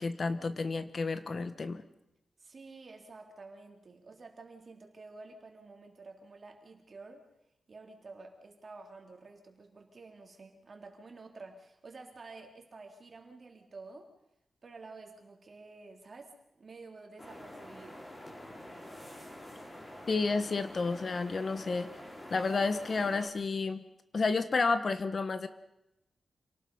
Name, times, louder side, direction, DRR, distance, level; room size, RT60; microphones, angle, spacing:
voice 1, 0.0-1.8 20.1-21.9 22.3-23.8 24.1-25.5, left 4 dB, 45° left, 11 dB, 1.2 m, -31 dB
voice 2, 2.4-7.3 7.7-14.1 14.6-18.1, right 3 dB, 45° right, 3 dB, 3.4 m, -50 dB
sound 1, 17.2-23.3, left 1 dB, 25° left, 4.9 m, -47 dB
27.5 x 18.5 x 5.6 m, 0.86 s
wide cardioid pair, 130°, 0 cm